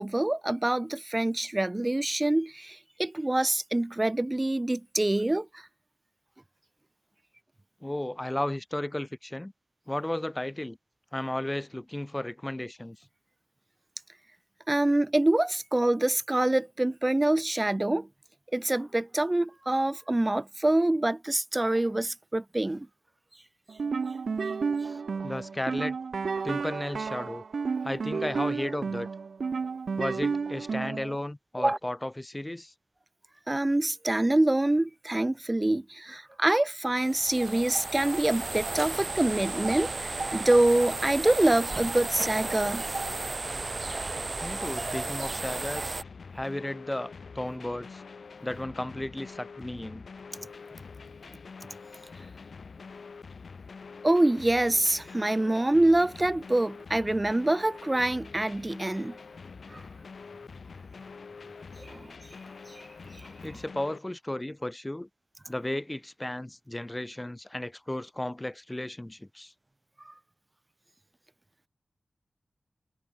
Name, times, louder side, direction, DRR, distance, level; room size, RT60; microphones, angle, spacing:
voice 1, 0.0-5.6 14.7-18.1 18.5-22.9 31.6-31.8 33.5-42.8 50.4-50.5 54.0-59.2 59.7-59.8 61.8-62.1 62.7-62.8 63.1-63.3 70.1-70.2, right 1 dB, 25° right, 0.8 m, -26 dB
voice 2, 7.8-9.5 9.9-10.8 11.1-13.0 24.8-26.0 26.4-27.4 27.8-29.1 30.0-32.7 44.4-46.0 46.3-48.0 48.4-50.1 63.4-65.1 65.5-69.5, left 1 dB, 20° left, 7.8 m, -34 dB
sound 1, 23.7-31.2, right 5 dB, 75° right, 0.8 m, -32 dB
sound 2, 37.0-46.0, right 3 dB, 45° right, 3.6 m, -34 dB
sound 3, 46.0-64.0, left 5 dB, 75° left, 2.6 m, -46 dB
cardioid pair, 50°, 0 cm